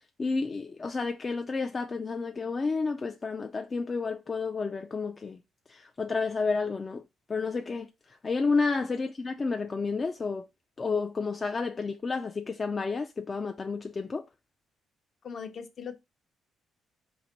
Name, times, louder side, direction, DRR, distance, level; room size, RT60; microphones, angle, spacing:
voice 1, 0.2-5.4 5.7-7.0 7.3-10.5 10.8-14.2, left 4 dB, 35° left, 0.4 m, -31 dB
voice 2, 15.2-16.0, left 6 dB, 50° left, 0.7 m, -39 dB
4.0 x 2.5 x 4.4 m
cardioid pair, 90°, 0 cm